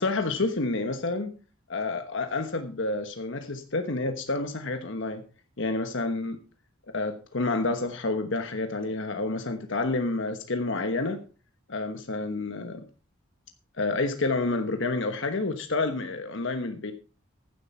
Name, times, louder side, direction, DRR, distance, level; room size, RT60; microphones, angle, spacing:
voice 1, 0.0-1.3 1.7-5.2 5.6-6.4 6.9-11.2 11.7-12.8 13.8-16.9, left 3 dB, 60° left, 1.1 m, -29 dB
15.0 x 7.8 x 4.4 m
head